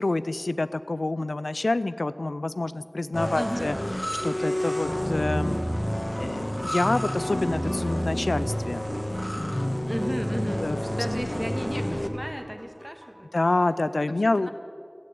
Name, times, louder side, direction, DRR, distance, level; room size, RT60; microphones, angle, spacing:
voice 1, 0.0-3.8 4.2-5.6 6.2-8.9 9.3-9.9 10.6-10.8 13.3-14.5, left 2 dB, 85° left, 14 dB, 0.4 m, -27 dB
sound 1, 3.1-12.1, equal, 15° left, 1.2 m, -29 dB
voice 2, 3.3-3.7 9.9-13.3 14.4-14.5, equal, 15° right, 5 dB, 1.5 m, -34 dB
sound 2, 5.2-13.7, equal, 60° right, 3.8 m, -49 dB
14.0 x 8.5 x 9.3 m, 2.3 s
wide cardioid pair, 45°, 0 cm